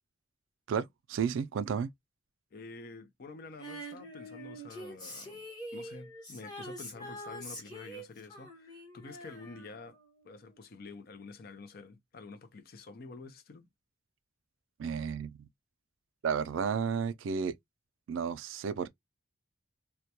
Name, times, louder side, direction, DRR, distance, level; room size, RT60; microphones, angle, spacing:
voice 1, 0.7-1.9 14.8-15.5 16.2-17.5 18.1-18.9, right 6 dB, 75° right, 0.3 m, -32 dB
voice 2, 2.5-5.5 5.7-10.0 10.2-13.7, left 3 dB, 50° left, 0.5 m, -48 dB
Female singing, 3.6-10.2 10.5-10.6, equal, 20° left, 0.9 m, -45 dB
2.2 x 2.2 x 2.7 m
head